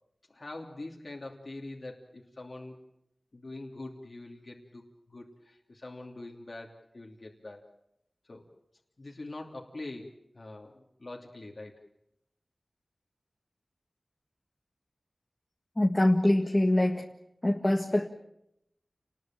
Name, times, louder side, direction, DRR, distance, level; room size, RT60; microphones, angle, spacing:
voice 1, 0.3-2.8 3.3-7.7 8.3-8.5 9.0-11.7, left 2 dB, 55° left, 2.9 m, -44 dB
voice 2, 15.8-17.1 17.4-18.1, left 1 dB, 20° left, 1.7 m, -24 dB
29.5 x 20.5 x 7.7 m
wide cardioid pair, 70°, 0 cm